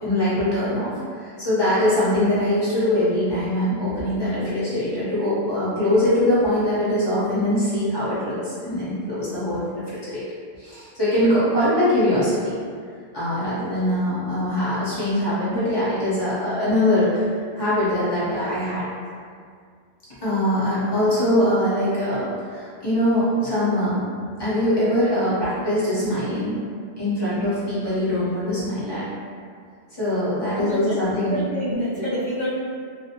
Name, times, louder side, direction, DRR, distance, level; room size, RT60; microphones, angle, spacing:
voice 1, 0.0-10.2 10.6-12.5 13.1-18.9 20.2-24.0 24.4-26.6 27.0-29.1 29.9-31.4, left 1 dB, 25° left, -12 dB, 0.9 m, -22 dB
voice 2, 30.6-31.0 31.3-32.5, equal, 55° right, -14 dB, 0.9 m, -27 dB
2.4 x 2.1 x 2.8 m, 2.1 s
omnidirectional pair, 1.2 m